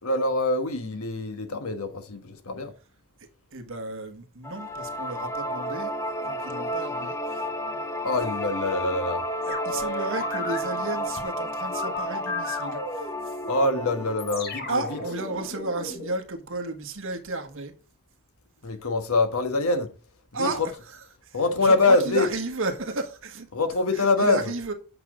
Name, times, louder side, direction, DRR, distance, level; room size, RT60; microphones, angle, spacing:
voice 1, 0.0-2.7 8.0-9.2 13.5-15.0 18.6-19.9 20.3-20.7 21.3-22.3 23.5-24.4, left 3 dB, 75° left, 1.4 m, -24 dB
voice 2, 3.5-5.9 6.2-7.5 9.5-13.3 14.7-17.7 20.3-20.7 21.2-23.5 23.9-24.7, right 3 dB, 60° right, 1.4 m, -33 dB
sound 1, 4.4-15.5, equal, 15° left, 0.6 m, -32 dB
sound 2, 9.5-10.6 11.7-16.1, left 2 dB, 45° left, 1.9 m, -34 dB
8.4 x 6.0 x 3.8 m
head